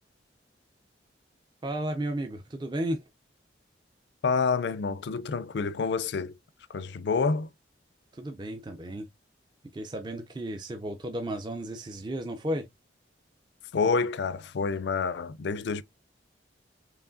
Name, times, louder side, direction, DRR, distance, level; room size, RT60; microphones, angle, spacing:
voice 1, 1.6-3.0 8.1-9.1 9.7-12.7, right 1 dB, 25° right, 0.4 m, -33 dB
voice 2, 4.2-6.3 6.7-7.5 13.7-15.8, left 4 dB, 70° left, 0.4 m, -28 dB
4.7 x 3.0 x 2.5 m
head